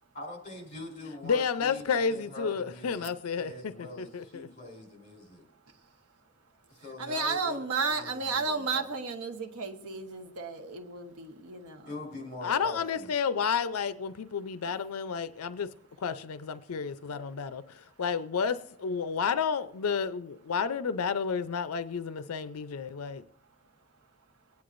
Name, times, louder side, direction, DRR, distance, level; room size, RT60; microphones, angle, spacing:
voice 1, 0.1-5.5 6.7-8.9 11.8-13.1, left 2 dB, 35° left, 0 dB, 3.7 m, -44 dB
voice 2, 1.2-4.5 12.4-15.7 16.0-23.2, left 6 dB, 85° left, 13 dB, 0.5 m, -31 dB
voice 3, 7.0-11.9, right 4 dB, 90° right, 5 dB, 1.2 m, -33 dB
23.0 x 9.5 x 2.5 m, 0.83 s
head